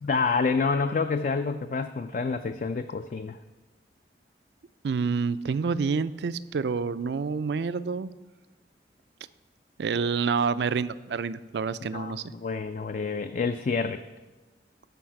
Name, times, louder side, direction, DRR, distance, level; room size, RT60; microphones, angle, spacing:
voice 1, 0.0-3.4 11.8-14.0, left 4 dB, 45° left, 9 dB, 0.3 m, -28 dB
voice 2, 4.8-8.1 9.8-12.2, right 5 dB, 75° right, 15 dB, 0.4 m, -28 dB
13.5 x 4.9 x 5.8 m, 1.2 s
head